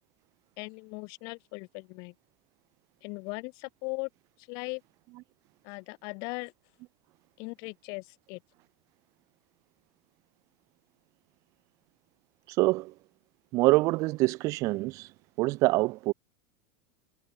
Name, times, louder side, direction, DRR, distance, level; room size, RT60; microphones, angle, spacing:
voice 1, 0.6-2.1 3.0-4.1 4.4-4.8 5.6-6.5 7.4-8.4, left 32 dB, 55° left, 7.1 m, -38 dB
voice 2, 12.6-12.9 13.5-15.1 15.4-16.1, right 21 dB, 45° right, 1.0 m, -25 dB
supercardioid pair, 150°, 8 cm